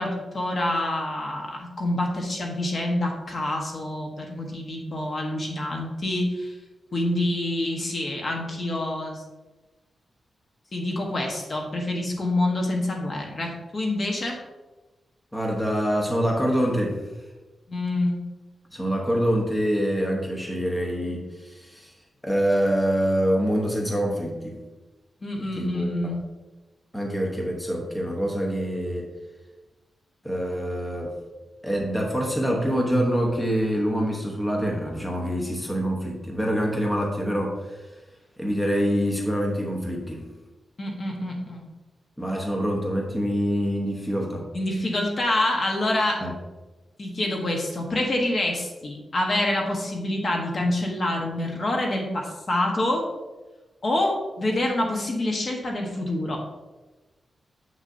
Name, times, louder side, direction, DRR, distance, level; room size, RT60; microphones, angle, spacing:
voice 1, 0.0-6.6 6.9-9.2 10.7-14.4 17.7-18.2 25.2-26.2 40.8-41.7 44.5-46.2 47.0-53.1 53.8-56.4, left 1 dB, 40° left, 1 dB, 1.1 m, -27 dB
voice 2, 15.3-17.0 18.7-21.9 22.2-24.6 25.4-26.1 26.9-29.1 30.2-31.1 31.6-37.9 38.4-40.2 42.2-44.4 46.2-46.3, equal, 5° left, -1 dB, 0.9 m, -25 dB
7.2 x 6.3 x 2.6 m, 1.2 s
wide cardioid pair, 155°, 0 cm